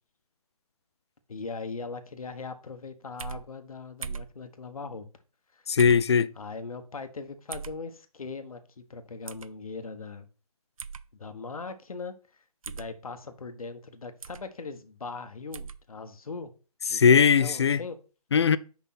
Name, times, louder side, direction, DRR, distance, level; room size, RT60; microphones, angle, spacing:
voice 1, 1.3-5.0 5.5-5.6 6.4-10.3 11.1-16.5 16.8-18.0, left 4 dB, 65° left, 1.2 m, -40 dB
sound 1, 3.2-3.4 4.0-4.3 5.8-6.1 7.5-7.8 9.3-9.5 10.8-11.0 12.6-12.9 14.2-14.5 15.5-15.8, right 6 dB, 60° right, 0.5 m, -38 dB
voice 2, 5.7-6.3 16.9-17.8 18.3-18.6, left 6 dB, 45° left, 0.4 m, -20 dB
6.4 x 5.4 x 4.2 m
figure-of-eight pair, 145°, 20 cm